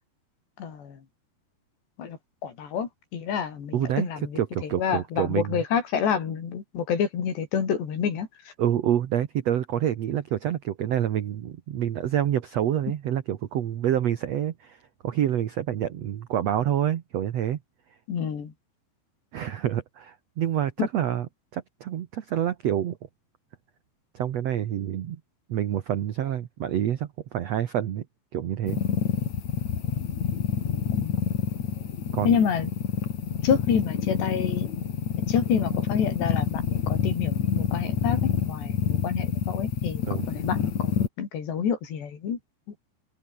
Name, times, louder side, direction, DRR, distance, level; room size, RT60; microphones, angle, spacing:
voice 1, 0.6-1.0 2.0-8.5 18.1-18.5 20.8-20.9 31.0-31.3 32.2-32.7 33.4-34.7 35.3-42.4, left 7 dB, 85° left, 6.1 m, -28 dB
voice 2, 3.7-4.1 4.3-5.6 8.6-17.6 19.3-21.3 21.5-23.0 24.1-25.2 25.5-28.0 28.3-28.8 32.1-32.4 40.0-40.3, right 10 dB, 70° right, 1.5 m, -27 dB
sound 1, 28.6-41.1, left 7 dB, 50° left, 3.3 m, -27 dB
open air
omnidirectional pair, 4.8 m